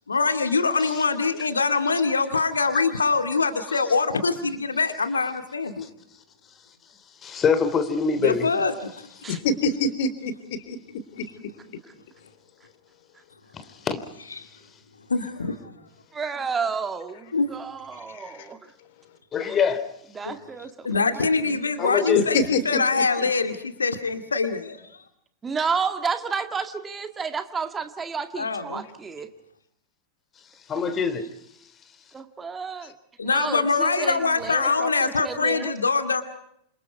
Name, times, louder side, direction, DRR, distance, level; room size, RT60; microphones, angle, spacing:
voice 1, 0.1-5.9 8.2-9.0 14.4-14.5 15.1-15.6 17.3-17.5 20.2-20.4 20.8-24.8 28.4-28.8 33.2-36.2, left 4 dB, 75° left, 2.2 m, -24 dB
voice 2, 7.2-8.5 13.5-14.0 19.3-19.9 21.8-22.3 30.7-31.2, left 6 dB, 25° left, 2.9 m, -24 dB
voice 3, 9.3-10.8 11.1-11.2 18.1-18.5 22.3-23.5, left 3 dB, 50° left, 3.3 m, -27 dB
voice 4, 16.1-18.6 19.4-19.6 20.1-20.9 21.5-21.6 25.4-29.3 32.1-32.9 33.2-35.7, right 5 dB, 15° right, 1.9 m, -31 dB
29.0 x 27.5 x 4.7 m
figure-of-eight pair, 90°, 0 cm